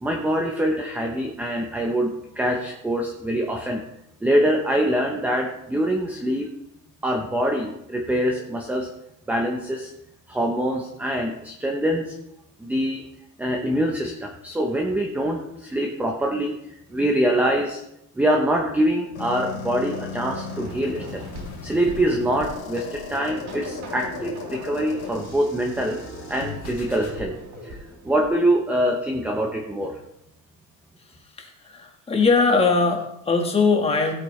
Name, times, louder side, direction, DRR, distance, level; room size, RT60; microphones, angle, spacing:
voice 1, 0.0-3.8 4.2-6.5 7.0-8.9 9.3-9.9 10.3-12.2 12.6-13.0 13.4-17.8 18.2-21.2 21.6-26.0 26.3-27.4 27.6-27.8 28.0-30.0, right 1 dB, 5° right, 1 dB, 0.7 m, -24 dB
sound 1, 19.2-27.2, left 5 dB, 85° left, 3.6 m, -37 dB
sound 2, 20.5-28.8, right 1 dB, 55° right, 3.5 m, -40 dB
voice 2, 31.4-34.1, left 4 dB, 15° left, 2 dB, 1.5 m, -21 dB
16.0 x 8.4 x 3.2 m, 0.84 s
cardioid pair, 165°, 34 cm